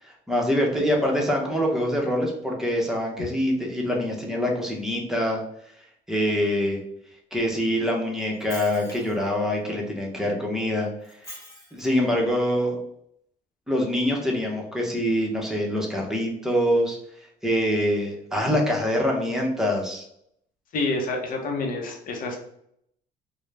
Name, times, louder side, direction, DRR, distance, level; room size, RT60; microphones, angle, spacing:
voice 1, 0.3-5.4 6.1-6.8 7.3-10.9 11.7-12.8 13.7-17.0 17.4-20.0, equal, 5° right, -1 dB, 0.7 m, -24 dB
Shatter, 8.2-9.3 11.0-12.0, left 1 dB, 20° left, 1.2 m, -43 dB
voice 2, 20.7-22.4, left 2 dB, 55° left, 2 dB, 0.7 m, -28 dB
2.3 x 2.0 x 3.2 m, 0.72 s
cardioid pair, 110°, 17 cm